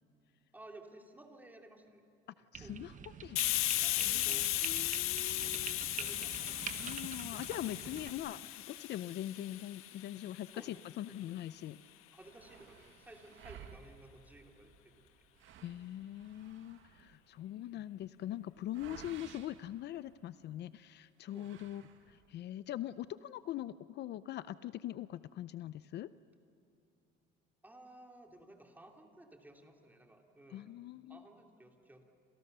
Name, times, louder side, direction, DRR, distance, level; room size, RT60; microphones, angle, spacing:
voice 1, 0.5-2.0 2.6-2.8 3.7-4.5 6.0-6.6 7.3-7.4 10.5-11.2 12.1-15.0 21.3-21.5 27.6-30.7 31.1-32.0, right 1 dB, 10° right, 2 dB, 2.9 m, -55 dB
voice 2, 2.5-3.0 3.2-3.4 4.0-5.8 6.8-11.8 15.6-26.1 30.5-31.2, left 13 dB, 55° left, 15 dB, 0.6 m, -42 dB
golf troley passing, 2.5-8.1, right 8 dB, 35° right, 1.2 m, -46 dB
Hiss, 3.4-10.8, left 16 dB, 85° left, 1.3 m, -36 dB
sound 1, 6.5-8.0 8.4-8.5 9.0-9.1 9.9-11.2 11.5-11.6 11.8-20.6 21.2-22.4, right 9 dB, 65° right, 1.8 m, -57 dB
29.5 x 27.5 x 6.8 m, 2.8 s
cardioid pair, 145°, 21 cm